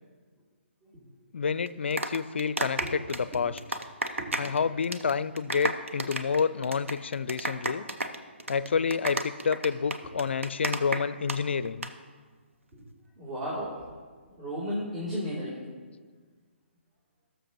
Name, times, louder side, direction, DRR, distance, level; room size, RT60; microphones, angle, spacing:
voice 1, 1.3-3.8 4.4-7.8 8.5-11.9, left 6 dB, 65° left, 16 dB, 0.4 m, -29 dB
sound 1, 1.7-4.6 4.8-5.1 5.4-11.4 11.7-11.9, right 2 dB, 85° right, 0.7 m, -32 dB
voice 2, 13.2-13.7 14.4-15.6, equal, 35° right, -8 dB, 3.0 m, -33 dB
20.0 x 6.8 x 3.0 m, 1.5 s
figure-of-eight pair, 135°, 7 cm